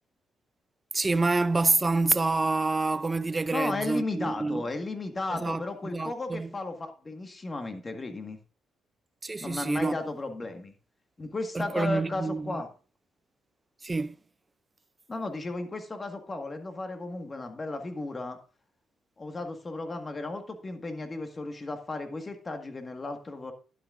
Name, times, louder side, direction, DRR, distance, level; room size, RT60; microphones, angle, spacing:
voice 1, 0.9-4.6 5.3-6.5 9.2-10.0 11.5-12.6 13.8-14.2, right 3 dB, 20° right, 0.4 m, -27 dB
voice 2, 3.5-8.4 9.4-10.7 11.2-12.7 15.1-18.4 19.2-23.5, left 2 dB, 25° left, 1.7 m, -34 dB
11.0 x 9.2 x 2.5 m
cardioid pair, 90°, 0 cm